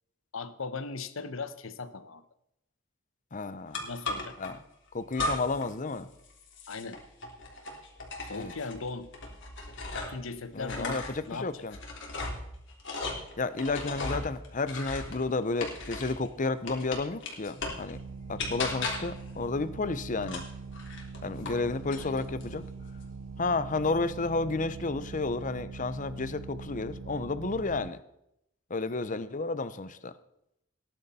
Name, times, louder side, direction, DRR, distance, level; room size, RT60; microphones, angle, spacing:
voice 1, 0.3-2.2 3.8-4.4 6.7-7.0 8.3-9.1 10.1-11.6 22.0-22.2, left 4 dB, 80° left, 12 dB, 1.0 m, -38 dB
voice 2, 3.3-3.9 4.4-4.6 4.9-6.1 8.3-8.5 10.5-11.8 13.4-18.0 18.3-20.4 21.2-22.6 23.4-28.0 28.7-30.1, left 3 dB, 40° left, 14 dB, 0.8 m, -31 dB
sound 1, 3.7-4.5 5.1-5.7 6.0-10.3 10.6-16.3 16.7-17.9 18.4-19.2 20.2-21.6 21.9-22.5, left 2 dB, 60° left, 3.3 m, -37 dB
sound 2, 17.9-27.9, right 4 dB, 85° right, 0.5 m, -42 dB
19.0 x 10.5 x 4.3 m, 0.81 s
head